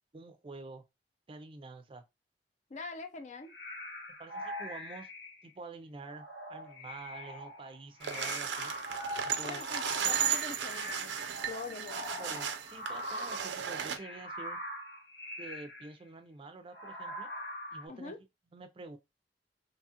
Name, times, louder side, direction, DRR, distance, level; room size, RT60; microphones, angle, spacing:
voice 1, 0.1-0.8 1.3-2.0 4.2-5.1 5.4-8.7 9.2-9.7 12.2-14.6 15.4-17.3 17.7-18.2 18.5-19.0, right 3 dB, 30° right, 0.4 m, -47 dB
voice 2, 2.7-3.6 9.4-12.3 17.9-18.2, left 4 dB, 45° left, 0.5 m, -44 dB
sound 1, 3.4-5.5 6.0-13.5 13.9-15.9 16.7-17.9, left 1 dB, 85° left, 1.1 m, -43 dB
sound 2, 8.0-14.0, right 8 dB, 85° right, 0.4 m, -35 dB
2.9 x 2.3 x 2.8 m
head